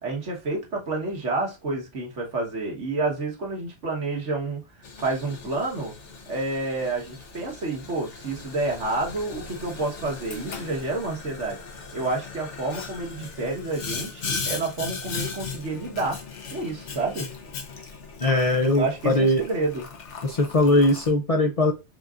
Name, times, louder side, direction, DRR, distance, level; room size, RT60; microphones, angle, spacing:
voice 1, 0.0-4.6 5.0-5.9 6.3-11.6 11.9-16.2 16.5-17.3 18.8-19.8, right 2 dB, 85° right, 1.7 m, -29 dB
Boiling, 4.8-21.1, left 5 dB, 80° left, 1.3 m, -38 dB
voice 2, 18.2-19.4 20.2-21.7, left 1 dB, 45° left, 0.5 m, -20 dB
4.8 x 3.8 x 2.4 m
omnidirectional pair, 1.2 m